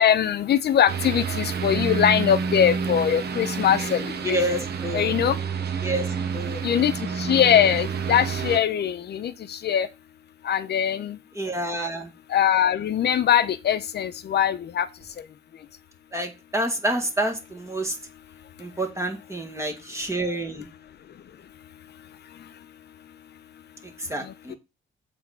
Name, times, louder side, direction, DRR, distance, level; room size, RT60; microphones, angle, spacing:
voice 1, 0.0-4.4 4.9-5.4 6.6-9.9 10.4-11.2 12.3-14.9 24.2-24.6, left 9 dB, 55° left, 0.8 m, -22 dB
sound 1, 0.9-8.6, right 6 dB, 55° right, 1.0 m, -29 dB
voice 2, 4.2-5.2 5.8-6.6 11.3-12.1 16.1-18.0 18.6-20.7 24.0-24.6, right 1 dB, 15° right, 1.7 m, -28 dB
7.8 x 3.6 x 5.7 m
cardioid pair, 90°, 20 cm